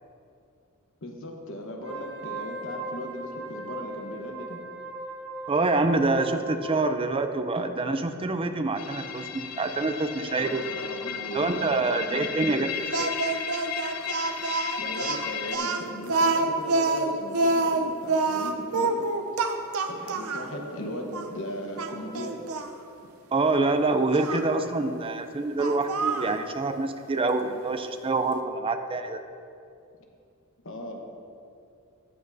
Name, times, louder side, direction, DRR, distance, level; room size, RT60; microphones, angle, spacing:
voice 1, 1.0-4.6 10.4-12.6 14.0-14.1 14.8-19.0 19.9-22.4 30.6-31.0, left 1 dB, 65° left, 2 dB, 1.1 m, -37 dB
Wind instrument woodwind instrument, 1.7-7.0, right 2 dB, 50° right, 1.5 m, -39 dB
voice 2, 5.5-10.6 11.3-12.7 13.0-13.1 23.3-29.2, right 3 dB, 25° right, 8 dB, 0.5 m, -26 dB
sound 1, 8.8-15.6, left 8 dB, 80° left, 0.6 m, -35 dB
Speech, 12.9-20.5 21.1-21.3 21.8-22.7 24.1-24.4 25.6-26.4, right 3 dB, 70° right, 0.6 m, -26 dB
13.5 x 8.7 x 2.7 m, 2.5 s
head